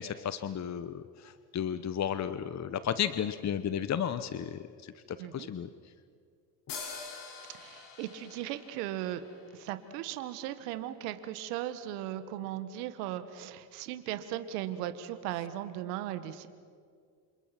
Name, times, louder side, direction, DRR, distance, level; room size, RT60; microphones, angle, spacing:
voice 1, 0.0-4.9 5.3-5.7, left 9 dB, 35° left, 12 dB, 1.1 m, -33 dB
voice 2, 5.2-5.5 7.5-9.2 9.5-16.5, right 12 dB, 80° right, 10 dB, 1.7 m, -37 dB
sound 1, 6.7-10.2, left 5 dB, 60° left, 7.0 m, -46 dB
28.5 x 28.0 x 6.0 m, 2.2 s
hypercardioid pair, 75°, 47 cm